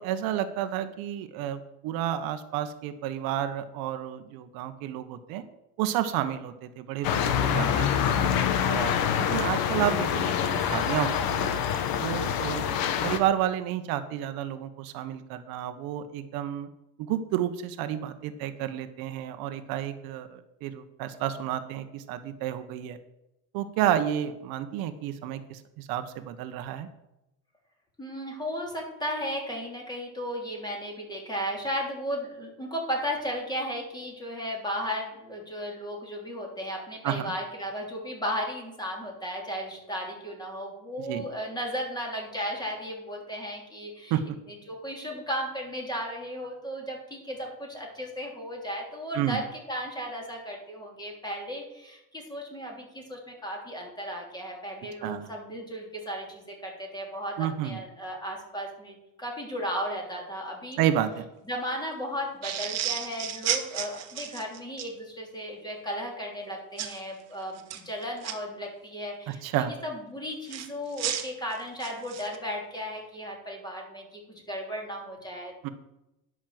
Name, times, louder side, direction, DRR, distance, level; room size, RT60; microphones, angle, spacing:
voice 1, 0.0-5.4 5.8-8.1 8.6-11.5 12.0-16.7 17.0-23.0 23.5-26.9 37.0-37.3 41.1-41.2 44.1-44.4 49.1-49.4 55.0-55.3 57.4-57.8 60.8-61.3 69.3-69.7 75.6-75.7, right 11 dB, 70° right, 10 dB, 1.0 m, -31 dB
sound 1, 7.0-13.2, left 8 dB, 70° left, 1.3 m, -26 dB
voice 2, 28.0-44.2 44.5-60.8 61.4-75.5, equal, 10° left, 0 dB, 3.3 m, -35 dB
sound 2, 62.4-64.9 66.8-67.0 67.6-68.3 70.5-72.4, right 10 dB, 45° right, 1.3 m, -32 dB
10.5 x 6.2 x 7.6 m, 0.90 s
cardioid pair, 135°, 37 cm